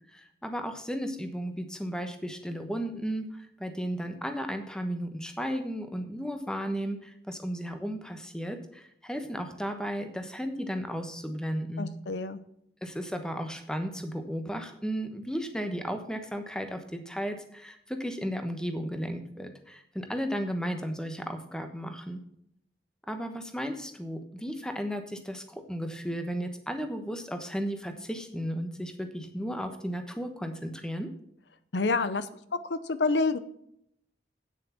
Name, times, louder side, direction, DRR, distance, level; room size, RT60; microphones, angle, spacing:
voice 1, 0.1-11.9 12.8-22.2 23.1-31.1, equal, 5° left, 7 dB, 1.1 m, -34 dB
voice 2, 11.8-12.4 31.7-32.3 32.7-33.4, left 3 dB, 90° left, 13 dB, 0.7 m, -27 dB
9.2 x 7.8 x 5.8 m, 0.72 s
head